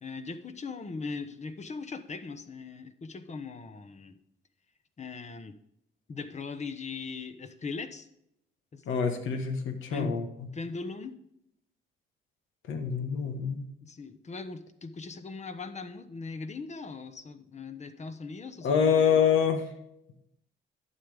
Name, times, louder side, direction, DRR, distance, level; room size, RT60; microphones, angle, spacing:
voice 1, 0.0-4.2 5.0-5.5 6.1-8.1 8.7-8.8 9.9-10.2 10.5-11.1 13.8-19.2, left 4 dB, 35° left, 9 dB, 1.0 m, -39 dB
voice 2, 8.9-10.5 12.7-13.6 18.6-19.7, left 7 dB, 80° left, 6 dB, 1.4 m, -26 dB
11.5 x 8.2 x 3.5 m, 0.79 s
cardioid pair, 90°, 20 cm